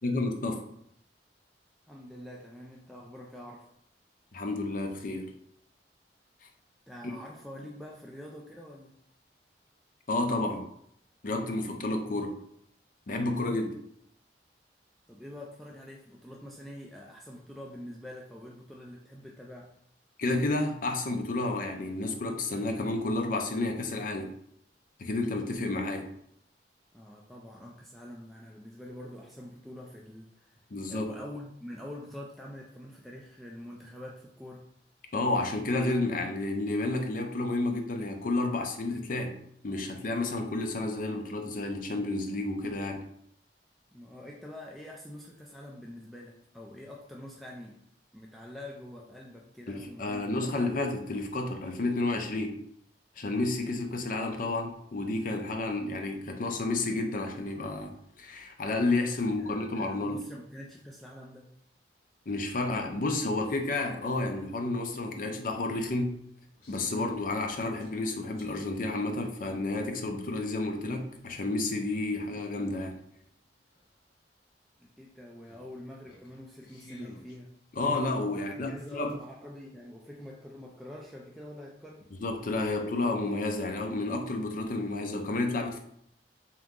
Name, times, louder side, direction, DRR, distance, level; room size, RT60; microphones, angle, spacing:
voice 1, 0.0-0.6 4.3-5.3 10.1-10.6 11.2-12.4 13.1-13.8 20.2-24.3 25.0-26.1 30.7-31.1 35.1-39.4 39.6-43.1 49.7-52.6 53.2-60.2 62.3-66.2 66.7-73.0 77.7-79.1 82.2-85.8, left 2 dB, 50° left, 4 dB, 0.5 m, -31 dB
voice 2, 1.8-3.7 6.9-9.0 15.1-19.8 26.9-30.6 30.9-34.7 43.9-47.8 48.1-50.6 59.4-61.5 74.8-77.6 78.3-82.1, left 1 dB, ahead, -3 dB, 0.3 m, -45 dB
sound 1, 66.6-67.2 67.8-68.6 70.0-70.1 72.8-72.9 73.1-73.2 73.7-73.9 75.5-77.4 77.8-79.2, left 2 dB, 80° left, 1.2 m, -51 dB
3.6 x 2.9 x 3.6 m, 0.71 s
head